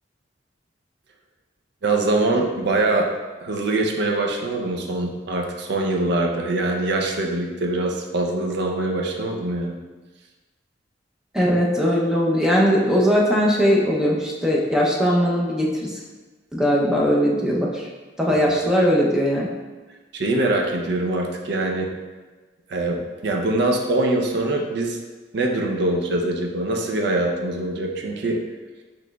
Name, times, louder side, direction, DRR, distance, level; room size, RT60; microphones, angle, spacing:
voice 1, 1.8-3.1 3.4-9.7 18.3-18.4 20.1-21.9 22.7-25.0 25.3-28.4, right 2 dB, 65° right, 2 dB, 0.5 m, -23 dB
voice 2, 11.3-16.0 16.5-17.9 18.2-19.5, equal, 5° right, -3 dB, 0.6 m, -20 dB
6.1 x 3.1 x 2.3 m, 1.3 s
head